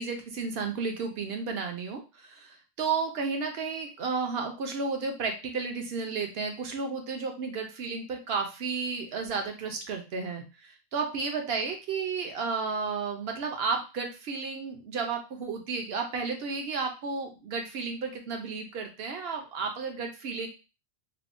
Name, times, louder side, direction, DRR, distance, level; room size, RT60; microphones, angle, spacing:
voice 1, 0.0-20.5, right 4 dB, 70° right, 4 dB, 0.8 m, -32 dB
3.4 x 2.1 x 2.5 m, 0.30 s
omnidirectional pair, 1.1 m